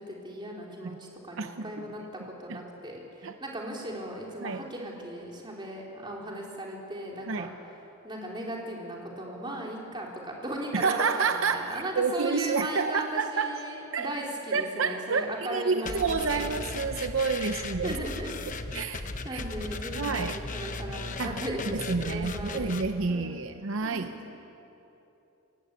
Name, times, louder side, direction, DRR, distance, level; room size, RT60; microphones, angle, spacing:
voice 1, 0.0-7.5 8.0-16.6 17.5-18.4 19.2-22.7 23.1-23.4 23.8-24.2, right 1 dB, 20° right, -2 dB, 3.5 m, -37 dB
voice 2, 1.4-1.7 2.5-2.6 3.2-3.3 4.4-4.6 7.3-7.5 10.7-13.6 13.9-14.1 14.5-18.0 18.7-19.0 19.3-19.4 19.9-20.4 21.2-21.4 21.7-24.1, right 4 dB, 65° right, 8 dB, 0.7 m, -29 dB
sound 1, 15.8-22.9, left 3 dB, 35° left, 1.0 m, -37 dB
29.0 x 15.0 x 8.4 m, 3.0 s
head